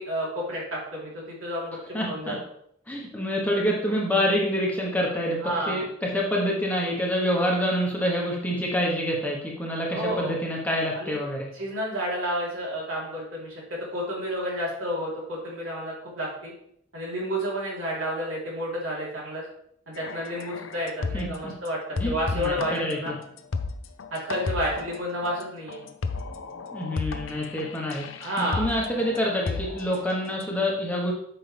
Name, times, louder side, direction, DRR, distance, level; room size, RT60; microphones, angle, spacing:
voice 1, 0.0-2.3 5.4-5.8 9.9-10.3 10.9-11.2 11.5-16.5 16.9-19.4 19.9-23.1 24.1-25.8 28.2-28.7, equal, 75° right, -5 dB, 3.5 m, -30 dB
voice 2, 1.9-2.4 2.9-11.5 21.1-21.5 22.0-23.1 26.7-28.1 28.4-31.1, equal, 5° left, -2 dB, 1.2 m, -27 dB
sound 1, 20.0-21.5 21.9-30.5, left 4 dB, 70° left, 0.6 m, -33 dB
8.6 x 5.7 x 3.4 m, 0.70 s
head